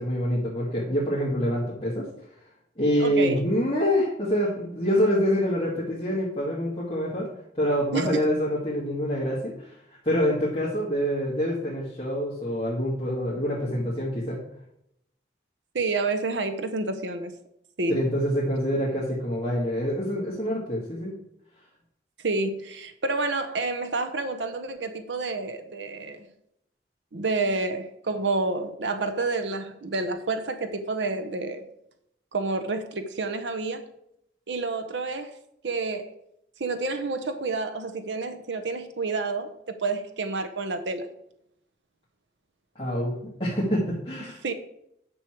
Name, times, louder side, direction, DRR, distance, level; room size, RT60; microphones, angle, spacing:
voice 1, 0.0-2.1 2.8-7.3 7.5-9.8 10.0-14.4 17.9-21.1 42.8-44.4, equal, 30° left, 2.1 m, -26 dB
voice 2, 3.0-3.4 7.9-8.1 15.7-17.3 17.8-18.0 22.2-26.2 27.1-31.6 32.3-33.9 34.5-35.3 35.6-36.1 36.6-39.5 39.8-41.1 44.4-44.5, right 3 dB, 85° right, 0.8 m, -29 dB
9.8 x 6.4 x 4.6 m
head